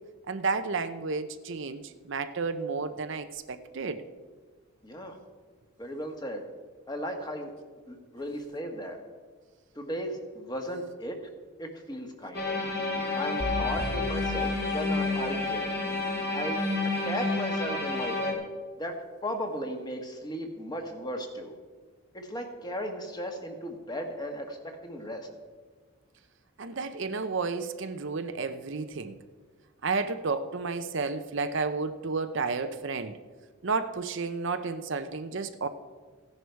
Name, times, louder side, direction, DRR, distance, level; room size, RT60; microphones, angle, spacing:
voice 1, 0.3-4.0 26.6-29.2 29.8-33.2 33.6-35.7, right 4 dB, 55° right, 10 dB, 0.7 m, -32 dB
voice 2, 4.8-5.2 5.8-6.4 6.9-7.5 7.9-9.0 9.7-11.2 11.6-12.6 13.1-15.7 16.3-16.6 17.0-18.4 18.8-19.0 19.2-21.5 22.1-25.3, equal, 20° left, 4 dB, 1.4 m, -36 dB
sound 1, 12.3-18.3, left 3 dB, 45° left, 2.5 m, -30 dB
sound 2, 13.4-15.5, equal, 75° right, 1.8 m, -37 dB
15.5 x 10.5 x 4.6 m, 1.5 s
head